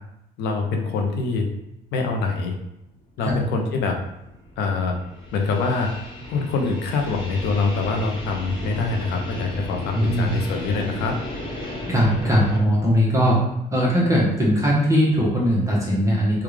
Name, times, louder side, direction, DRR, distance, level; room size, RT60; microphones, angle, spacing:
voice 1, 0.4-1.5 1.9-2.5 3.2-4.0 4.6-5.0 5.3-5.9 6.3-11.1, left 4 dB, 80° left, 3 dB, 0.6 m, -24 dB
sound 1, 2.9-12.6, left 1 dB, 25° left, 1.1 m, -35 dB
voice 2, 9.9-10.3 11.9-13.4 13.7-16.4, equal, 20° right, -5 dB, 1.0 m, -20 dB
3.5 x 2.3 x 3.2 m, 0.84 s
cardioid pair, 110°, 17 cm